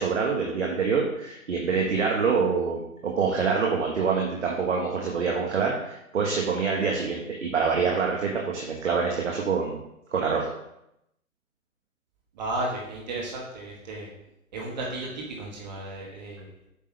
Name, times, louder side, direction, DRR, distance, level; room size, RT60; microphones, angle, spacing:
voice 1, 0.0-9.8 10.1-10.4, right 5 dB, 55° right, -1 dB, 1.4 m, -26 dB
voice 2, 12.3-14.1 14.5-16.7, right 2 dB, 30° right, -2 dB, 1.5 m, -34 dB
8.4 x 5.5 x 3.3 m, 0.83 s
hypercardioid pair, 150°, 42 cm